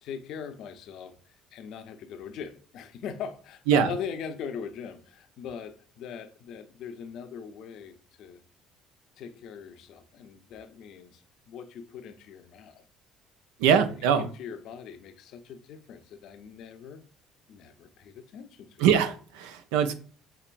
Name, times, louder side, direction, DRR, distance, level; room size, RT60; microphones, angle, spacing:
voice 1, 0.0-8.4 9.2-12.8 13.6-13.8 14.2-17.0 17.5-18.8, left 7 dB, 60° left, 0.5 m, -41 dB
voice 2, 13.6-14.3 18.8-19.9, right 8 dB, 75° right, 0.4 m, -22 dB
5.8 x 2.9 x 2.5 m
hypercardioid pair, 60°, 0 cm